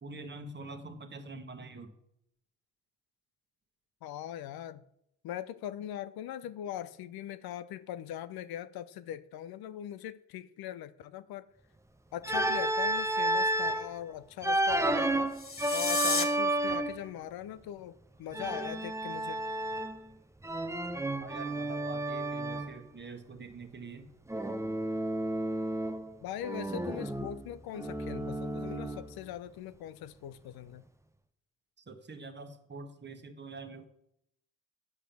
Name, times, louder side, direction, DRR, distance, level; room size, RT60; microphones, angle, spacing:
voice 1, 0.0-2.0 21.2-24.1 31.9-33.9, right 3 dB, 25° right, 1.4 m, -45 dB
voice 2, 4.0-4.8 5.2-11.5 12.1-15.3 15.7-19.4 26.2-30.8, left 11 dB, 65° left, 0.6 m, -41 dB
Organ, 12.2-13.9 14.4-17.1 18.3-20.1 20.4-22.7 24.3-26.1 26.4-29.1, right 1 dB, 5° right, 0.7 m, -31 dB
sound 1, 15.3-16.2, left 4 dB, 35° left, 1.3 m, -31 dB
8.5 x 5.0 x 5.9 m
hypercardioid pair, 50°, 39 cm